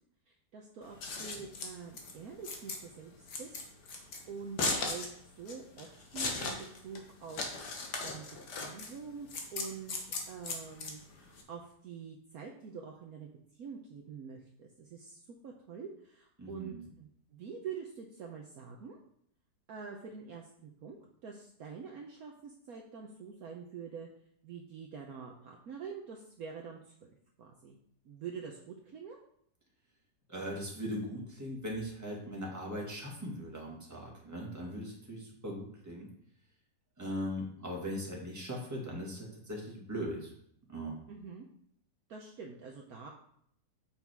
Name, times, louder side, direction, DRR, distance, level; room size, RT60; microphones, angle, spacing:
voice 1, 0.3-6.6 6.8-7.6 8.0-8.2 8.6-19.0 19.7-24.1 24.4-27.1 27.4-27.8 28.0-29.2 41.1-41.5 42.1-43.1, right 6 dB, 60° right, 0 dB, 1.2 m, -46 dB
Scissors, 0.8-11.4, left 3 dB, 70° left, 1.8 m, -38 dB
voice 2, 16.4-16.9 30.3-36.1 37.0-40.3 40.7-41.0, equal, 10° right, -3 dB, 1.9 m, -39 dB
7.2 x 5.8 x 4.6 m, 0.67 s
omnidirectional pair, 1.9 m